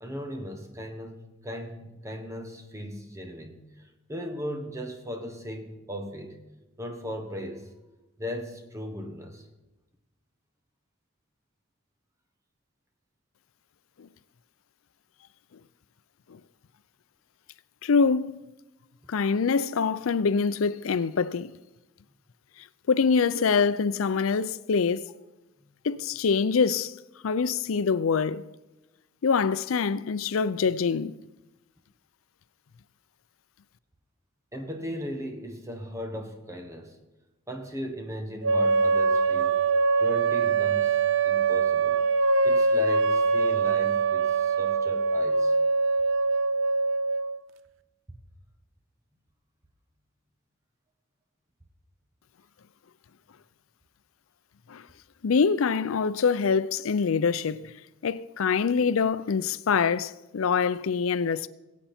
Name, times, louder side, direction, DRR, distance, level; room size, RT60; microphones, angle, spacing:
voice 1, 0.0-3.7 4.1-6.4 6.8-7.7 8.2-9.5 34.5-37.0 37.5-39.6 40.0-41.0 41.2-42.0 42.4-45.5, equal, 15° right, 1.3 m, -37 dB
voice 2, 17.8-18.3 19.1-21.5 22.9-25.0 25.8-26.9 27.2-28.4 29.2-31.1 54.7-54.8 55.2-57.6 58.0-61.5, left 5 dB, 90° left, 0.5 m, -24 dB
sound 1, 38.4-47.4, right 4 dB, 65° right, 0.5 m, -23 dB
21.0 x 8.3 x 4.3 m
head